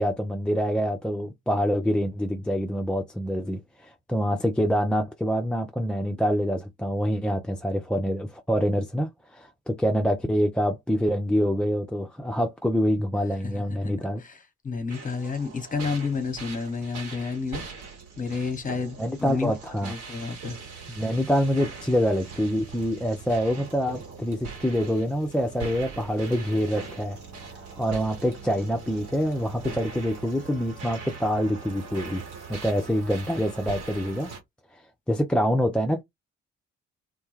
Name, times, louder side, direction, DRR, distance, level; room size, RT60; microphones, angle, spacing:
voice 1, 0.0-14.2 19.0-19.9 20.9-27.2 27.8-32.2 32.5-34.3 34.7-34.8 35.1-36.0, equal, 5° left, 0.3 m, -26 dB
voice 2, 13.4-13.9 14.2-14.4 14.6-17.6 18.2-20.5, left 4 dB, 25° left, 0.8 m, -31 dB
sound 1, 14.9-34.4, right 5 dB, 70° right, 1.0 m, -41 dB
2.1 x 2.0 x 3.1 m
figure-of-eight pair, 40°, 35 cm